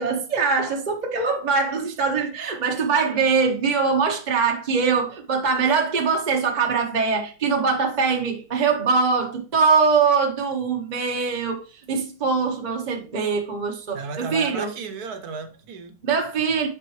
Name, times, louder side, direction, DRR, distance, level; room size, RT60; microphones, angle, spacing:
voice 1, 0.0-14.7 16.1-16.7, right 5 dB, 40° right, 0.7 m, -22 dB
voice 2, 13.9-16.0, right 5 dB, 65° right, 1.2 m, -33 dB
8.8 x 5.3 x 3.1 m
omnidirectional pair, 1.9 m